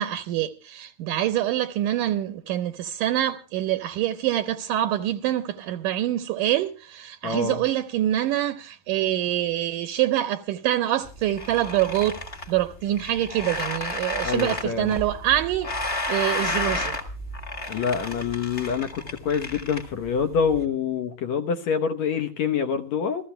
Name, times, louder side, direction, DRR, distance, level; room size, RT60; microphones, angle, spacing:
voice 1, 0.0-12.2 12.5-15.7 16.1-17.0, right 13 dB, 75° right, 2.3 m, -25 dB
voice 2, 7.2-7.6 14.2-15.0 17.7-23.3, left 6 dB, 65° left, 1.9 m, -26 dB
sound 1, 11.1-20.6, left 2 dB, 30° left, 1.3 m, -32 dB
27.5 x 14.5 x 2.2 m
omnidirectional pair, 4.0 m